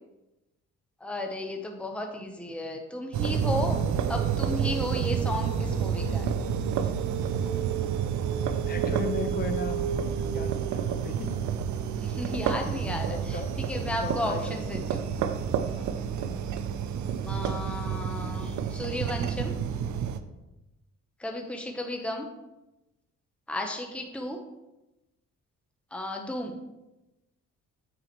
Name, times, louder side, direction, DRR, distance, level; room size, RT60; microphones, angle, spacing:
voice 1, 1.0-3.8 4.1-6.3 12.0-15.1 17.2-19.5 21.2-22.3 23.5-24.4 25.9-26.6, left 1 dB, 5° left, 2 dB, 1.0 m, -34 dB
sound 1, 3.1-20.2, right 7 dB, 70° right, 0.6 m, -29 dB
voice 2, 8.7-9.8 10.3-11.3 12.6-13.5 14.0-14.8 15.7-16.3, left 4 dB, 30° left, 6 dB, 1.0 m, -37 dB
8.4 x 6.2 x 3.1 m, 0.97 s
cardioid pair, 90°, 30 cm